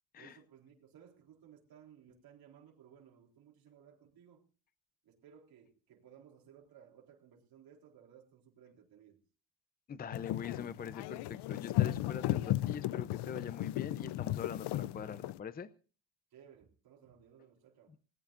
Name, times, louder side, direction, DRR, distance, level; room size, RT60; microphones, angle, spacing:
voice 1, 0.1-4.4 5.0-9.2 16.3-17.9, right 8 dB, 55° right, 3.8 m, -59 dB
voice 2, 9.9-15.7, left 6 dB, 20° left, 0.6 m, -43 dB
sound 1, 10.1-15.4, left 15 dB, 65° left, 0.6 m, -35 dB
20.5 x 19.0 x 2.5 m
cardioid pair, 155°, 43 cm